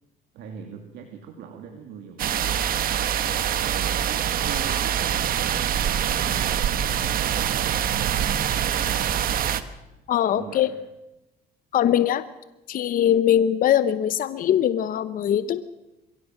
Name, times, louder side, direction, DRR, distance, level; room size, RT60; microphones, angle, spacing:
voice 1, 0.3-2.2 2.9-3.2 3.6-7.1 10.3-10.8, right 7 dB, 80° right, 4 dB, 2.6 m, -41 dB
sound 1, 2.2-9.6, right 9 dB, 60° right, 1.3 m, -24 dB
voice 2, 10.1-10.7 11.7-12.3 12.7-15.6, left 10 dB, 55° left, 14 dB, 0.9 m, -21 dB
22.5 x 16.5 x 7.6 m, 0.99 s
cardioid pair, 110°, 17 cm